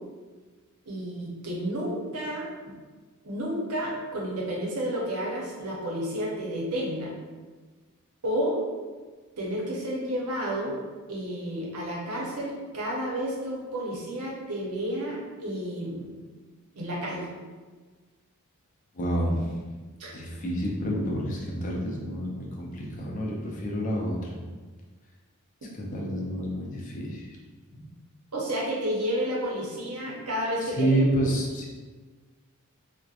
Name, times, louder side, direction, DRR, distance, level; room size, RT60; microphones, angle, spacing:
voice 1, 0.9-2.7 3.2-7.1 8.2-8.6 9.4-10.8 11.1-16.1 16.7-17.3 20.0-20.1 28.3-31.0, equal, 85° right, -4 dB, 0.7 m, -31 dB
voice 2, 18.9-19.5 20.1-24.4 25.8-27.4 30.6-31.7, right 1 dB, 35° left, -2 dB, 0.4 m, -29 dB
2.7 x 2.1 x 2.4 m, 1.4 s
head